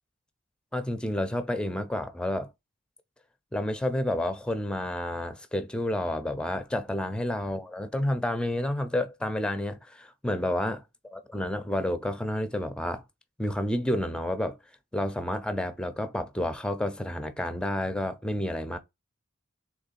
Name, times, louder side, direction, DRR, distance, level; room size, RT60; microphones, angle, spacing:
voice 1, 0.7-2.5 3.5-10.8 11.1-13.0 13.4-14.6 14.9-18.8, left 1 dB, 5° left, 0.5 m, -30 dB
3.7 x 3.1 x 4.1 m
head